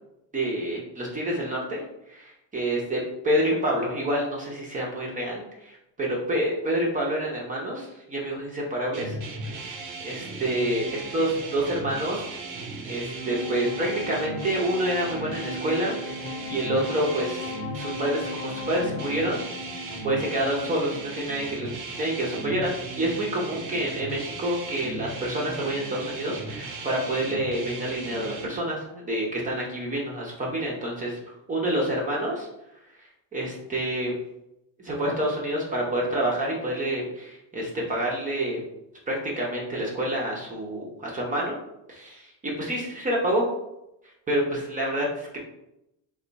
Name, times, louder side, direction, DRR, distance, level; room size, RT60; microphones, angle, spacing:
voice 1, 0.3-1.8 2.1-3.0 3.2-9.2 9.6-12.2 12.8-16.0 16.5-17.4 17.8-19.4 20.0-22.7 23.0-31.2 31.5-32.5 33.0-34.2 34.8-38.6 39.1-41.6 41.9-42.3 42.6-43.4 44.3-45.4, right 1 dB, 20° right, -3 dB, 0.7 m, -28 dB
sound 1, 8.9-28.5, right 3 dB, 55° right, 0.8 m, -37 dB
Wind instrument woodwind instrument, 13.1-22.6, left 4 dB, 70° left, 0.6 m, -39 dB
3.4 x 2.4 x 3.9 m, 0.87 s
cardioid pair, 150°, 40 cm